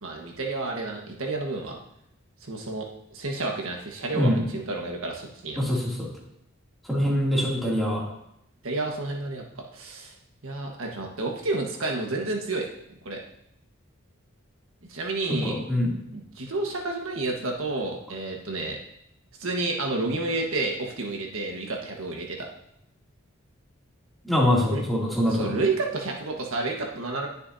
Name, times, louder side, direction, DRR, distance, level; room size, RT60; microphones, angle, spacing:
voice 1, 0.0-1.8 2.5-2.9 3.1-5.8 8.6-10.1 10.4-12.7 13.0-13.2 14.9-15.5 16.1-18.8 19.4-22.5 24.7-24.8 25.3-27.3, right 2 dB, 75° right, 1 dB, 1.5 m, -30 dB
voice 2, 5.6-6.1 6.9-8.0 15.4-16.0 24.2-25.5, left 1 dB, ahead, -6 dB, 2.7 m, -24 dB
19.5 x 6.8 x 2.8 m, 0.77 s
head